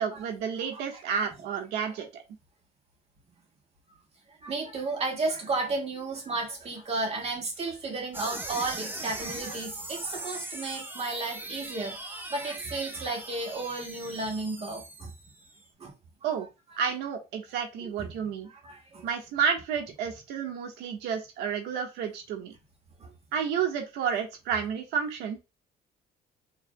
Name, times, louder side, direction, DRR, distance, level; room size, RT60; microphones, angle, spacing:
voice 1, 0.0-2.2 16.2-16.5 16.8-18.5 19.0-22.5 23.3-25.4, right 7 dB, 85° right, 1.3 m, -31 dB
voice 2, 0.7-1.3 1.8-1.9 4.4-15.1 15.8-15.9 17.8-18.1 18.5-19.1 23.0-23.1, right 3 dB, 35° right, 1.9 m, -33 dB
sound 1, 8.1-15.6, right 1 dB, 10° right, 0.9 m, -40 dB
5.5 x 3.3 x 2.2 m
cardioid pair, 110°, 17 cm